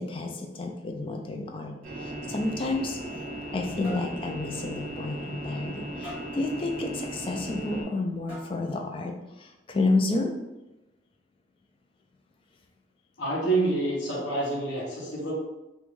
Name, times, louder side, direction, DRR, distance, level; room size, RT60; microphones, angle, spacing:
voice 1, 0.0-1.7 2.0-3.0 3.5-9.1 9.4-10.3, left 2 dB, 30° left, 3 dB, 0.3 m, -30 dB
sound 1, 1.8-7.8, right 1 dB, 50° right, 0.5 m, -37 dB
sound 2, 3.0-3.6 3.8-4.1 4.6-4.7 5.1-5.2 6.0-6.4 7.5-7.6 8.3-8.7, equal, 10° right, 1.1 m, -43 dB
voice 2, 13.2-15.3, right 2 dB, 80° left, -6 dB, 0.8 m, -27 dB
2.4 x 2.2 x 3.0 m, 1.0 s
head